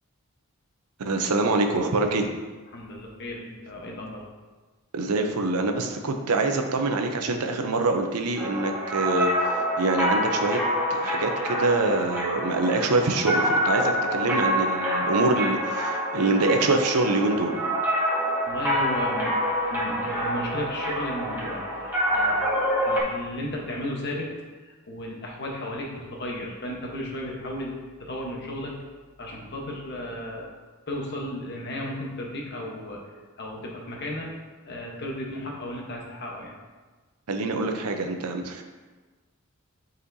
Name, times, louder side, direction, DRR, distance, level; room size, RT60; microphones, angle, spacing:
voice 1, 1.0-2.3 4.9-9.3 9.8-10.6 10.9-17.5 37.3-38.6, right 2 dB, 90° right, 5 dB, 0.7 m, -25 dB
voice 2, 2.7-4.2 18.4-24.3 24.6-28.7 29.2-30.5 30.9-33.0 33.4-34.3 34.6-36.6, left 1 dB, 50° left, -1 dB, 1.0 m, -34 dB
sound 1, 8.4-23.0, equal, 10° right, 0.9 m, -26 dB
8.4 x 4.2 x 2.7 m, 1.3 s
head